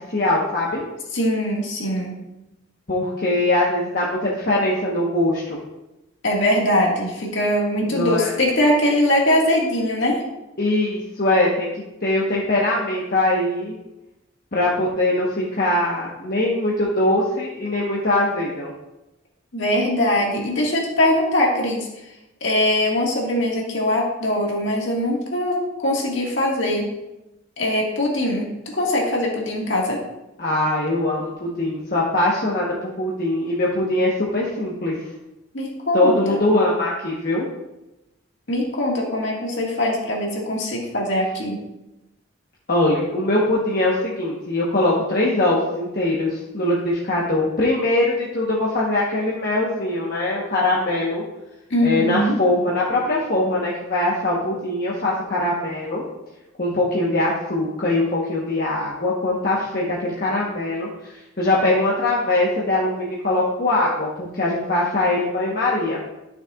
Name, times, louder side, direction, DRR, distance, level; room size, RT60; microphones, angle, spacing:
voice 1, 0.1-0.8 2.9-5.6 7.8-8.3 10.6-11.7 12.0-13.7 14.5-18.7 30.4-34.9 35.9-37.5 42.7-51.2 51.8-56.0 56.6-60.9 61.4-66.0, left 2 dB, 45° left, -5 dB, 1.2 m, -22 dB
voice 2, 1.1-2.2 6.2-10.2 19.5-21.9 22.4-26.9 27.6-30.0 35.5-36.4 38.5-41.6 51.7-52.4, left 1 dB, 60° left, -2 dB, 1.9 m, -21 dB
12.0 x 6.5 x 2.5 m, 0.96 s
head